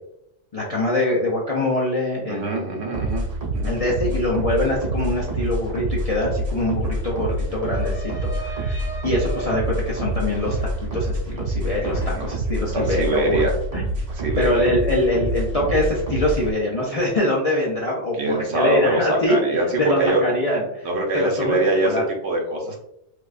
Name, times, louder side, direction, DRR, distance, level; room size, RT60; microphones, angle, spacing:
voice 1, 0.5-2.8 3.6-13.4 13.7-13.9 14.4-19.4 19.8-20.9 21.1-22.0, left 1 dB, 45° left, -4 dB, 0.5 m, -24 dB
voice 2, 2.3-3.3 3.5-3.7 11.9-12.3 12.7-13.5 14.1-14.7 18.1-20.2 20.8-22.8, right 1 dB, 60° right, 1 dB, 1.0 m, -23 dB
sound 1, 2.9-16.5, right 1 dB, 40° right, 0.7 m, -27 dB
sound 2, 6.0-6.1 6.3-11.5 11.8-12.6, right 1 dB, 80° left, 1.6 m, -38 dB
4.7 x 2.3 x 2.4 m, 0.81 s
omnidirectional pair, 1.3 m